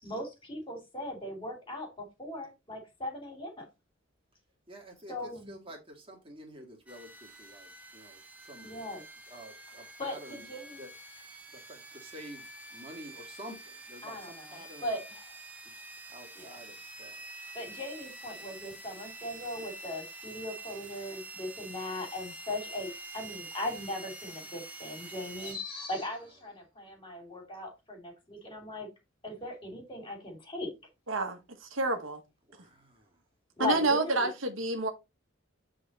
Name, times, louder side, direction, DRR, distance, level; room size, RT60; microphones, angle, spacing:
voice 1, 0.0-3.7 5.1-5.6 8.6-9.0 9.7-10.8 14.0-15.3 16.4-16.6 17.5-28.9 29.2-30.7 33.6-34.3, left 1 dB, 25° left, 2.6 m, -39 dB
voice 2, 4.7-8.2 8.5-8.7 9.3-10.5 10.8-10.9 11.5-14.9 15.7-15.8 16.1-17.2 32.5-33.0, right 1 dB, 25° right, 2.0 m, -49 dB
sound 1, 6.9-25.5, right 2 dB, 10° right, 1.0 m, -47 dB
voice 3, 31.1-32.2 33.6-34.9, right 2 dB, 75° right, 1.4 m, -29 dB
8.2 x 3.9 x 4.1 m
head